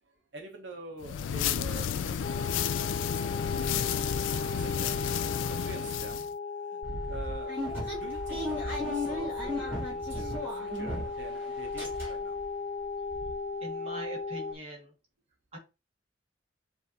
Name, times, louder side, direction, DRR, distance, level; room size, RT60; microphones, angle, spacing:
voice 1, 0.0-2.5 2.8-4.0 4.3-5.1 5.5-12.4, right 2 dB, 70° right, 2 dB, 0.8 m, -46 dB
sound 1, 1.0-6.3, left 8 dB, 80° left, 0.3 m, -31 dB
sound 2, 2.2-14.5, left 4 dB, 25° left, 0.6 m, -36 dB
sound 3, 6.8-11.3 11.6-12.4 12.8-12.9 13.1-13.3, equal, 10° right, 2.6 m, -36 dB
voice 2, 13.6-14.9 15.5-15.6, right 1 dB, 30° right, -1 dB, 1.6 m, -42 dB
7.2 x 2.6 x 2.8 m, 0.29 s
head